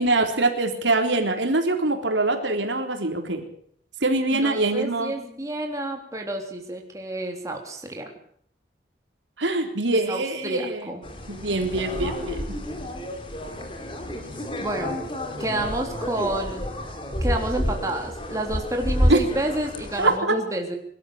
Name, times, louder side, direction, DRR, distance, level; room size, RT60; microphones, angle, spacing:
voice 1, 0.0-3.5 4.0-5.1 9.4-10.9 11.3-12.4 19.1-19.2 20.0-20.3, right 2 dB, 85° right, 4 dB, 3.8 m, -23 dB
voice 2, 4.3-8.1 10.1-11.0 14.6-15.0 15.4-16.7 17.2-20.8, right 1 dB, 15° right, 2 dB, 3.4 m, -29 dB
sound 1, 11.0-20.2, equal, 30° left, 3.5 m, -29 dB
23.5 x 13.0 x 8.7 m, 0.64 s
head